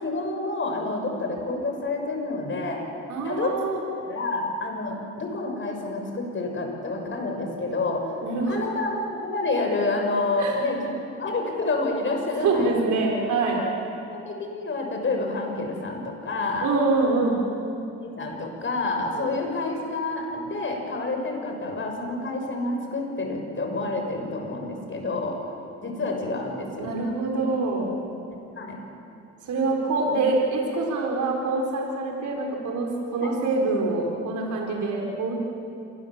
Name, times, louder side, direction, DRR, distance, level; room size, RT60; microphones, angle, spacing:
voice 1, 0.0-2.8 3.2-3.5 4.0-8.1 8.5-10.8 11.2-12.9 14.1-16.7 18.0-25.4 25.8-26.9 28.5-28.8 33.2-33.3, left 2 dB, 40° left, 2 dB, 6.6 m, -28 dB
voice 2, 3.1-3.8 8.2-8.6 10.4-10.6 12.4-13.6 16.6-17.4 19.1-19.3 26.8-27.9 29.4-35.3, right 3 dB, 75° right, 0 dB, 4.8 m, -25 dB
27.5 x 21.5 x 7.6 m, 2.7 s
cardioid pair, 90°, 30 cm